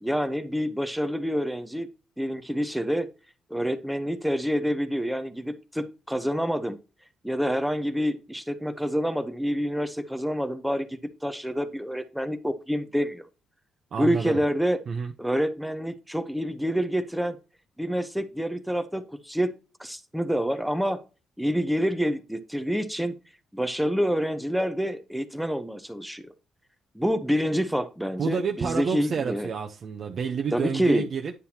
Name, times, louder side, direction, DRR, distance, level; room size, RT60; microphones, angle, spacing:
voice 1, 0.0-1.9 2.2-3.1 3.5-6.8 7.2-13.2 14.0-14.8 15.2-17.4 17.8-19.5 19.8-21.0 21.4-23.1 23.5-26.3 26.9-29.5 30.5-31.0, equal, ahead, 0.7 m, -27 dB
voice 2, 13.9-14.4 14.9-15.1 28.2-31.3, right 6 dB, 55° right, 0.7 m, -29 dB
9.6 x 5.6 x 2.9 m
cardioid pair, 90°, 0 cm